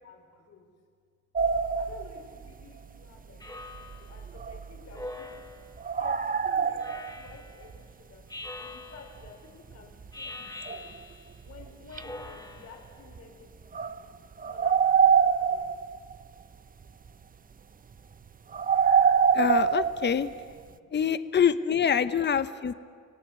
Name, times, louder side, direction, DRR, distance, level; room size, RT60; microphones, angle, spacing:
voice 1, 0.0-0.7 1.8-5.4 5.9-8.2 8.6-10.9 11.4-15.8 20.7-21.0, left 5 dB, 55° left, 1 dB, 3.6 m, -51 dB
sound 1, 1.3-2.6 3.7-5.0 5.8-7.4 7.7-7.8 9.2-9.3 9.7-9.8 10.0-10.1 10.7-11.0 11.5-11.6 11.9-12.3 13.1-13.2 13.7-16.2 18.5-20.5, right 7 dB, 30° right, 0.7 m, -25 dB
Speech synthesizer, 3.4-4.2 4.9-5.8 6.8-7.6 8.3-9.3 10.1-11.3 11.9-12.9, left 2 dB, 15° left, 2.9 m, -43 dB
voice 2, 19.3-20.3 20.9-22.7, left 7 dB, 35° left, 13 dB, 0.9 m, -25 dB
27.0 x 18.0 x 8.3 m, 2.1 s
cardioid pair, 90°, 30 cm